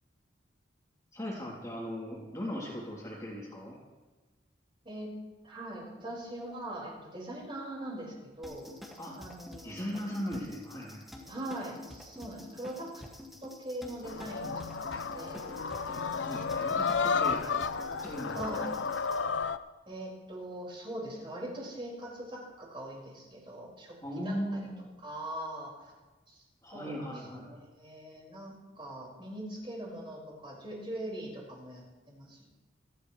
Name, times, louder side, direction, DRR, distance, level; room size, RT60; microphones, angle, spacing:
voice 1, 1.1-3.8 9.0-9.1 9.6-11.0 15.9-17.4 18.0-18.6 24.0-24.9 26.6-27.6, equal, 20° left, -5 dB, 3.4 m, -38 dB
voice 2, 5.4-8.6 9.2-9.8 11.2-13.0 13.4-15.4 18.3-18.8 19.9-24.0 24.2-24.6 25.0-25.9 26.3-26.4 26.7-32.4, right 1 dB, 30° right, -4 dB, 5.4 m, -41 dB
sound 1, 8.4-19.2, left 1 dB, ahead, 2.0 m, -48 dB
sound 2, 14.0-19.6, left 5 dB, 85° left, 0.7 m, -32 dB
28.5 x 11.5 x 3.3 m, 1.2 s
head